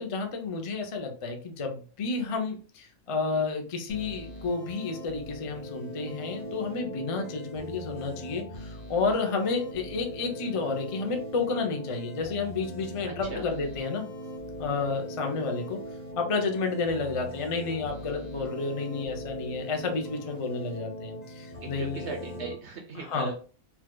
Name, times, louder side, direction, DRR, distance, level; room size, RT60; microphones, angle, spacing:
voice 1, 0.0-14.0 14.6-15.8 16.2-22.0 23.0-23.3, left 4 dB, 60° left, 3 dB, 0.3 m, -31 dB
sound 1, 3.9-22.5, equal, 40° left, 0.7 m, -40 dB
voice 2, 21.6-23.4, right 4 dB, 60° right, 3 dB, 0.8 m, -38 dB
4.2 x 2.3 x 2.2 m, 0.38 s
omnidirectional pair, 1.5 m